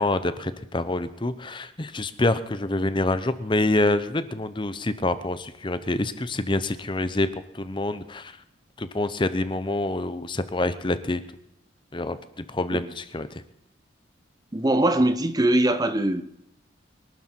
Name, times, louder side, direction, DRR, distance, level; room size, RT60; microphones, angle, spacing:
voice 1, 0.0-7.3 7.5-8.3 8.8-11.2 11.9-12.2 12.5-13.4, left 2 dB, 25° left, 0.8 m, -26 dB
voice 2, 14.5-16.2, right 1 dB, 20° right, 0.7 m, -21 dB
23.5 x 12.5 x 4.5 m
head